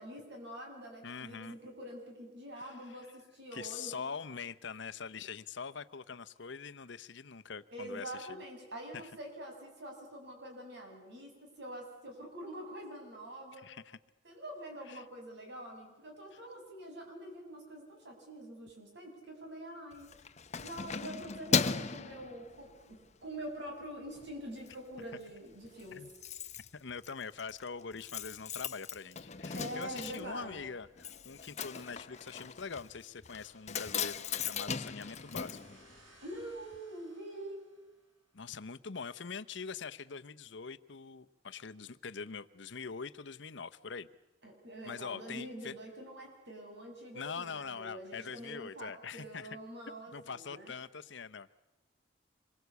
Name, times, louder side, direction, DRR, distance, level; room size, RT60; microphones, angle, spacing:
voice 1, 0.0-4.1 7.7-13.6 14.2-20.1 20.6-26.1 29.6-30.7 36.2-37.7 44.4-50.7, right 1 dB, 65° right, 2 dB, 7.1 m, -45 dB
voice 2, 1.0-1.6 2.6-3.0 3.5-8.4 8.9-9.1 13.6-14.0 14.9-15.0 25.9-26.1 26.7-35.8 38.3-44.1 44.8-45.7 47.1-49.6 50.1-51.7, left 5 dB, 65° left, 14 dB, 0.9 m, -43 dB
Keys jangling, 19.9-23.0 23.5-23.7 24.1-24.8 25.0-25.1 25.4-25.5 25.6-36.5 36.7-36.8, left 6 dB, 35° left, 0.9 m, -38 dB
sound 1, 34.6-38.3, right 2 dB, 90° right, 6.6 m, -63 dB
26.5 x 22.5 x 8.3 m, 1.0 s
head